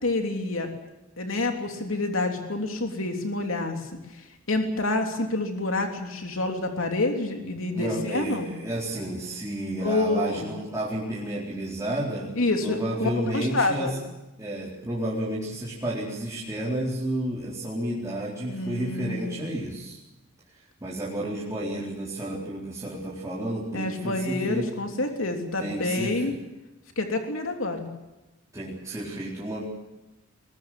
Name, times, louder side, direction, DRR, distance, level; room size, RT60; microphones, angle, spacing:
voice 1, 0.0-0.7 1.2-8.5 9.8-10.5 12.4-13.9 18.5-19.5 23.7-26.3 27.0-27.9, left 2 dB, 75° left, 4 dB, 3.2 m, -28 dB
voice 2, 7.7-12.4 12.6-14.0 14.4-20.0 20.5-24.7 25.6-26.4 28.5-29.6, right 1 dB, 15° right, -6 dB, 4.2 m, -31 dB
21.5 x 21.0 x 7.7 m, 1.0 s
head